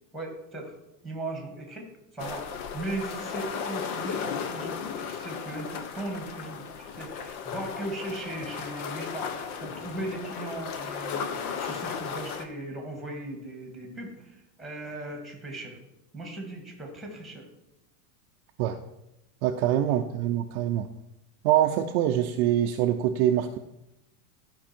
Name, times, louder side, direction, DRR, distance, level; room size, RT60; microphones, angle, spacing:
voice 1, 0.1-0.7 1.0-2.4 2.7-15.8 16.1-17.5 19.9-20.1, right 2 dB, ahead, 1 dB, 1.8 m, -38 dB
sound 1, 2.2-12.4, left 6 dB, 65° left, 1.1 m, -35 dB
voice 2, 19.4-20.9 21.4-23.6, right 11 dB, 45° right, 4 dB, 0.5 m, -24 dB
12.5 x 5.4 x 4.4 m, 0.90 s
supercardioid pair, 160°, 46 cm